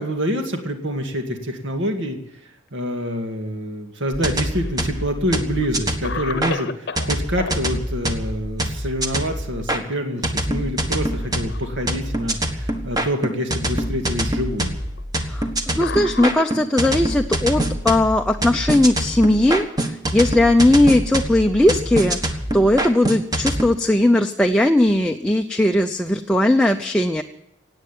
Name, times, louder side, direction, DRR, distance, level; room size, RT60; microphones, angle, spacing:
voice 1, 0.0-2.2 2.7-14.8, equal, 65° right, 5 dB, 2.2 m, -26 dB
sound 1, 4.1-6.5 7.0-9.8 10.2-23.7, right 1 dB, 20° right, 1.4 m, -25 dB
Cough, 4.2-5.1 5.6-5.7 6.0-7.6 9.4-9.9 10.2-10.3 11.1-11.8 12.6-12.7 13.7-13.8 15.0-15.2 15.8-17.0 18.0-19.4, left 4 dB, 55° left, 0.9 m, -34 dB
voice 2, 15.2-27.2, left 1 dB, 5° left, 4 dB, 0.6 m, -18 dB
17.5 x 8.9 x 9.2 m, 0.83 s
head